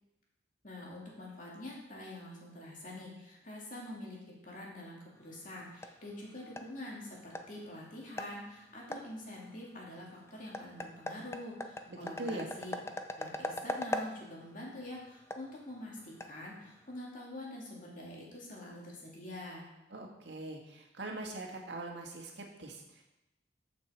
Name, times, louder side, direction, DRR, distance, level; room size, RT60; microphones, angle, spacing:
voice 1, 0.6-12.8 13.1-19.6, left 1 dB, 45° left, -4 dB, 2.9 m, -46 dB
sound 1, 5.2-17.0, left 1 dB, 15° left, 0.5 m, -43 dB
voice 2, 11.9-12.4 19.9-23.0, right 2 dB, 80° right, 1 dB, 1.7 m, -42 dB
12.5 x 6.1 x 4.4 m, 0.93 s
head